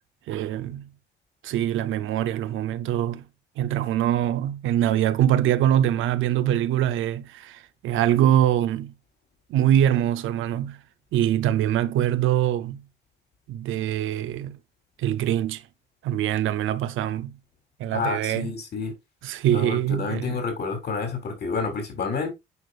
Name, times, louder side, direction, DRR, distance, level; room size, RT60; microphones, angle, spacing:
voice 1, 0.3-0.9 1.4-3.2 3.6-8.9 9.5-10.8 11.1-12.8 13.5-14.6 15.0-15.6 16.0-17.4 17.8-18.5 19.2-20.4, right 11 dB, 80° right, 0.6 m, -23 dB
voice 2, 17.9-18.9 19.5-22.3, left 4 dB, 55° left, 3.4 m, -29 dB
9.4 x 5.0 x 2.4 m
cardioid pair, 90°, 20 cm